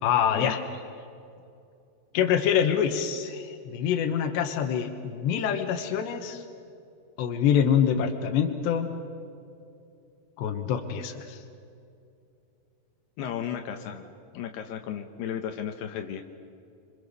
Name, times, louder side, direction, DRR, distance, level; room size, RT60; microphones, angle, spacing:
voice 1, 0.0-0.6 2.1-6.4 7.2-8.9 10.4-11.4, left 8 dB, 90° left, 6 dB, 3.6 m, -25 dB
voice 2, 13.2-14.1 14.3-16.2, left 9 dB, 75° left, 5 dB, 3.1 m, -34 dB
28.5 x 26.5 x 6.8 m, 2.5 s
omnidirectional pair, 4.9 m